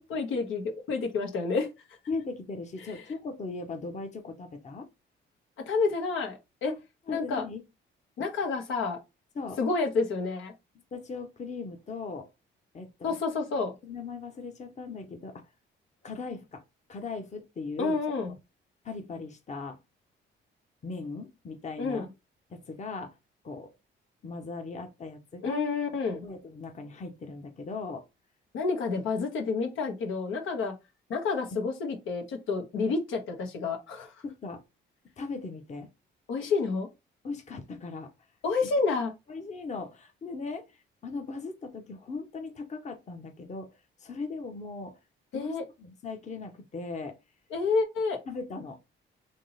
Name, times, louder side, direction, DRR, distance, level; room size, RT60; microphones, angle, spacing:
voice 1, 0.0-1.7 5.7-6.7 7.1-7.4 8.2-9.0 9.6-10.5 13.0-13.7 17.8-18.3 21.8-22.1 25.4-26.2 28.5-30.7 31.1-34.1 36.3-36.9 38.4-39.1 45.3-45.6 47.5-48.2, left 4 dB, 85° left, 1.2 m, -29 dB
voice 2, 2.1-4.9 6.7-6.8 7.1-7.6 9.3-9.6 10.9-12.3 12.7-13.2 13.8-15.4 16.0-16.6 16.9-18.0 18.2-18.3 18.8-19.8 20.8-22.1 22.5-23.1 23.4-23.7 24.2-25.6 26.2-28.1 34.2-34.6 35.2-35.9 37.2-38.1 38.6-38.7 39.3-45.0 45.3-47.2 48.3-48.8, left 4 dB, 35° left, 0.9 m, -38 dB
3.6 x 2.9 x 3.9 m
cardioid pair, 90°, 20 cm